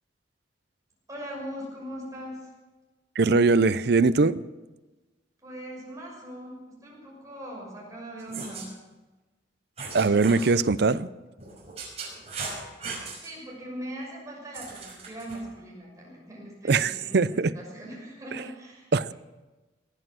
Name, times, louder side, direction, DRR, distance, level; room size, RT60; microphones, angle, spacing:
voice 1, 1.1-2.5 5.4-8.8 13.1-18.9, equal, 20° right, -3 dB, 6.2 m, -40 dB
voice 2, 3.2-4.4 9.9-11.1 16.7-17.5 18.9-19.1, right 4 dB, 60° right, 16 dB, 0.5 m, -21 dB
sound 1, 8.2-8.7 9.8-10.5 11.4-13.3 14.5-15.4, right 4 dB, 35° right, 5.7 m, -38 dB
19.0 x 11.5 x 6.1 m, 1.2 s
head